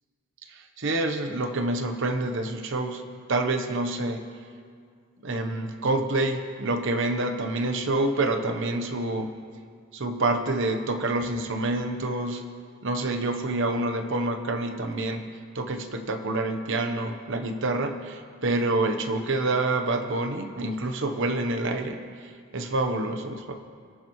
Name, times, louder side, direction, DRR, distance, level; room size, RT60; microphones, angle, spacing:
voice 1, 0.5-3.0 3.3-4.2 5.2-9.3 9.9-12.4 12.8-15.2 15.5-23.5, right 2 dB, 65° right, 6 dB, 1.0 m, -27 dB
23.0 x 11.0 x 3.1 m, 2.1 s
head